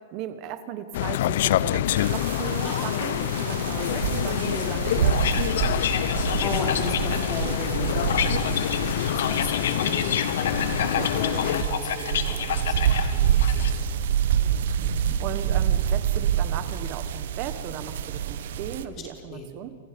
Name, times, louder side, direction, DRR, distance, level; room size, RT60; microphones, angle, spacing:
voice 1, 0.0-5.8 10.8-11.1 14.4-19.8, right 10 dB, 40° right, 10 dB, 1.2 m, -37 dB
sound 1, 0.9-11.6, left 13 dB, 65° left, 0.5 m, -27 dB
sound 2, 2.0-18.8, right 9 dB, 75° right, 1.3 m, -27 dB
sound 3, 5.1-13.7, left 9 dB, 80° left, 1.8 m, -30 dB
voice 2, 6.0-10.6 10.9-13.8 14.8-15.2 18.8-19.6, left 3 dB, 30° left, 0 dB, 4.6 m, -36 dB
29.5 x 27.5 x 5.3 m, 2.3 s
supercardioid pair, 145°, 0 cm